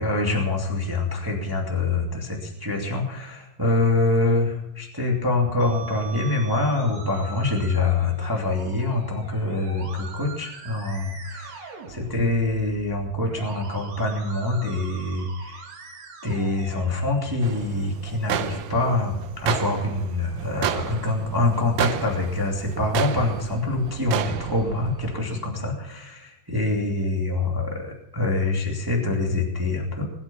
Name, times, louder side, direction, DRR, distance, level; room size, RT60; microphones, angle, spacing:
voice 1, 0.0-15.6 16.2-30.1, left 2 dB, 10° right, 0 dB, 2.1 m, -25 dB
Musical instrument, 5.6-17.5, right 5 dB, 60° right, 3.2 m, -42 dB
sound 1, 17.4-25.2, right 10 dB, 80° right, 1.3 m, -31 dB
21.0 x 8.8 x 7.1 m, 0.83 s
omnidirectional pair, 3.7 m